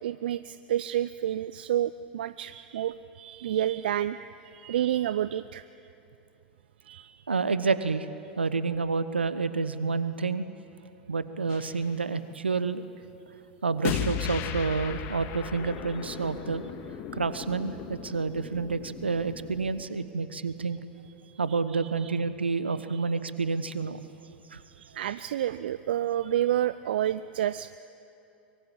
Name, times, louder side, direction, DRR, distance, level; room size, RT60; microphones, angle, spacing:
voice 1, 0.0-4.2 4.5-5.6 6.9-7.1 24.8-27.8, right 11 dB, 70° right, 15 dB, 0.5 m, -29 dB
voice 2, 7.3-8.1 8.4-10.4 11.1-12.8 13.6-16.6 17.1-20.8 21.4-24.0 24.5-24.6, right 4 dB, 85° right, 12 dB, 1.2 m, -29 dB
sound 1, 11.5-11.8 13.8-19.8, left 9 dB, 45° left, 1.8 m, -36 dB
24.0 x 23.0 x 8.9 m, 2.9 s
figure-of-eight pair, 90°, 6 cm